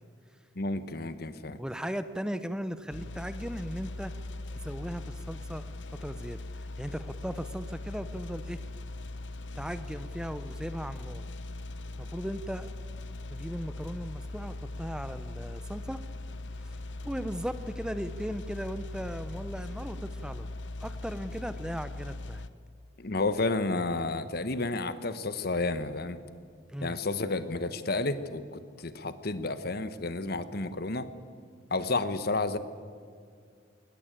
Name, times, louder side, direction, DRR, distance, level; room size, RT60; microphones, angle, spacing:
voice 1, 0.5-1.6 23.0-26.2 26.8-31.1 31.7-32.6, left 2 dB, 55° left, 12 dB, 1.2 m, -31 dB
voice 2, 1.5-4.1 4.6-6.4 6.8-8.6 9.5-11.2 12.0-12.7 13.3-16.0 16.6-20.5 20.8-22.4 26.7-27.0, equal, 5° right, 12 dB, 0.7 m, -37 dB
sound 1, 2.9-22.5, left 2 dB, 75° left, 1.0 m, -40 dB
21.0 x 20.0 x 9.0 m, 2.2 s
head